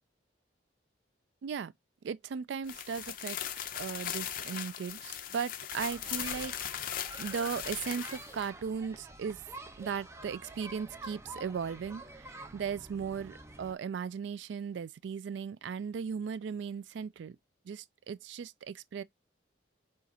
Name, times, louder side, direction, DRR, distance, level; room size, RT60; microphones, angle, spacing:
voice 1, 1.4-1.7 2.0-3.4 3.8-9.4 9.8-17.4 17.7-19.0, right 6 dB, 70° right, 0.3 m, -37 dB
sound 1, 2.6-8.5, left 10 dB, 50° left, 0.4 m, -39 dB
sound 2, 5.7-13.7, right 2 dB, 15° right, 0.5 m, -48 dB
4.2 x 2.5 x 4.0 m
head